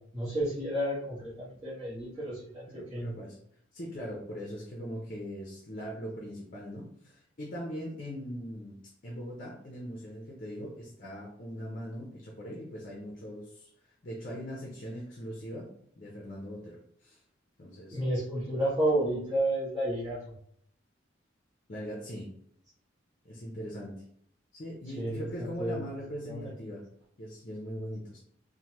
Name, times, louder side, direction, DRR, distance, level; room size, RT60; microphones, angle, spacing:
voice 1, 0.1-3.1 17.9-20.3 25.0-25.8 26.3-26.5, right 1 dB, 20° right, -11 dB, 1.0 m, -31 dB
voice 2, 2.7-3.4 3.7-8.8 9.0-15.7 16.0-17.2 17.6-18.0 21.7-22.3 23.2-24.0 24.5-26.8 27.2-28.2, equal, 45° left, -2 dB, 0.6 m, -40 dB
3.2 x 2.1 x 2.9 m, 0.66 s
head